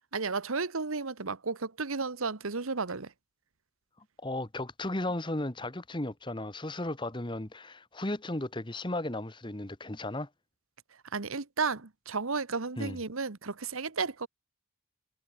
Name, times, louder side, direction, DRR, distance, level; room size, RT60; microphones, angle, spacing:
voice 1, 0.1-3.1 11.1-14.3, right 4 dB, 80° right, 1.3 m, -33 dB
voice 2, 4.2-10.3 12.8-13.0, left 1 dB, 20° left, 1.4 m, -35 dB
head